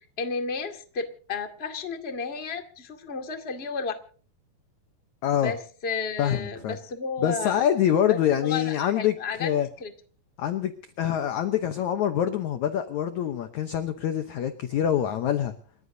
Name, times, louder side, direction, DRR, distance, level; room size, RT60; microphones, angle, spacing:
voice 1, 0.2-4.0 5.3-7.6 8.1-9.5 9.8-9.9, left 5 dB, 25° left, 1.4 m, -32 dB
voice 2, 5.2-5.5 6.2-6.8 7.2-9.1 9.4-9.7 10.4-10.7 11.0-15.6, left 10 dB, 70° left, 1.8 m, -25 dB
30.0 x 14.5 x 2.7 m
omnidirectional pair, 4.5 m